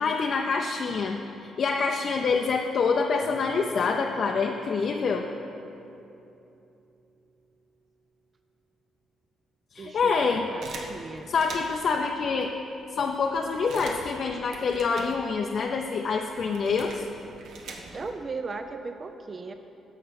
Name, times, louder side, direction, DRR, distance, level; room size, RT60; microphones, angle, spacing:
voice 1, 0.0-5.3 9.7-10.5 11.3-12.5 12.9-17.1, left 5 dB, 55° left, 2 dB, 0.6 m, -26 dB
sound 1, 3.2-7.5, right 3 dB, 20° right, 1.9 m, -50 dB
voice 2, 9.8-11.3 17.9-19.5, right 4 dB, 35° right, 7 dB, 0.4 m, -37 dB
sound 2, 10.6-12.0 12.6-12.7 12.9-15.6 15.8-18.2, right 3 dB, 75° right, 1.1 m, -43 dB
13.5 x 5.4 x 5.8 m, 2.8 s
cardioid pair, 90°, 0 cm